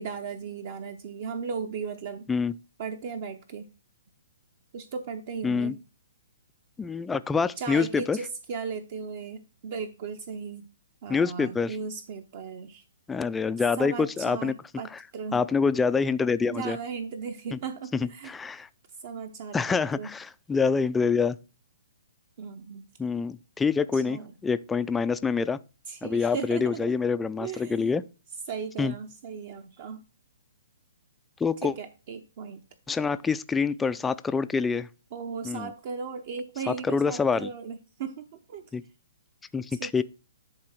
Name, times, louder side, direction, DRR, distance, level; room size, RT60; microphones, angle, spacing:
voice 1, 0.0-2.3 2.8-3.7 4.7-5.7 7.6-10.7 11.0-12.8 13.8-15.4 16.5-18.3 19.0-20.1 22.4-22.9 23.9-24.3 25.9-26.9 27.4-28.0 28.5-30.0 31.6-32.6 35.1-38.7 39.7-40.0, right 6 dB, 45° right, 0.8 m, -36 dB
voice 2, 5.4-5.8 6.8-8.2 11.1-11.8 13.1-14.5 15.3-16.8 17.5-17.6 18.0-18.7 19.5-21.4 23.0-25.6 26.0-28.0 28.8-28.9 31.4-31.7 32.9-34.9 35.4-35.7 36.7-37.5 38.7-38.8 39.5-40.0, left 5 dB, 10° left, 0.3 m, -26 dB
11.0 x 4.0 x 4.4 m
hypercardioid pair, 155°, 0 cm